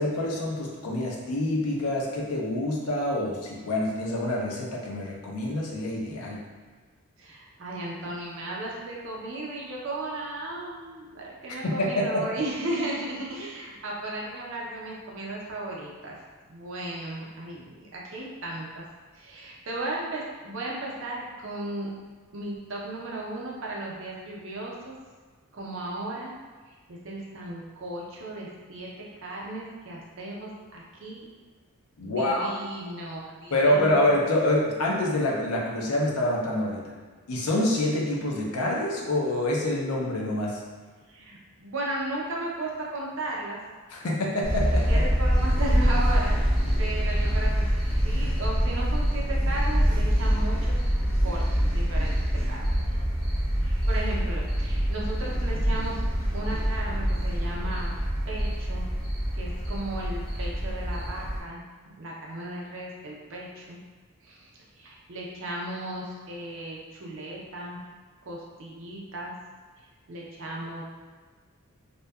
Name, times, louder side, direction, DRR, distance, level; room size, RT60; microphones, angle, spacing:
voice 1, 0.0-6.4 11.6-12.2 32.0-32.5 33.5-36.9 37.3-40.6 43.9-45.1, left 1 dB, 85° left, -2 dB, 0.5 m, -26 dB
voice 2, 7.2-16.1 16.5-18.9 19.1-21.9 22.3-25.0 25.5-26.4 26.7-31.3 32.0-34.1 41.1-43.6 44.9-46.4 46.8-47.7 48.0-50.8 51.2-51.4 51.7-52.2 52.5-53.0 53.6-56.1 56.3-57.9 58.3-58.9 59.3-61.6 62.0-63.8 64.2-67.8 68.2-69.3 70.1-70.8, right 1 dB, 60° right, -3 dB, 0.5 m, -35 dB
sound 1, 44.4-61.4, equal, 5° left, 0.5 m, -25 dB
2.7 x 2.2 x 2.2 m, 1.4 s
head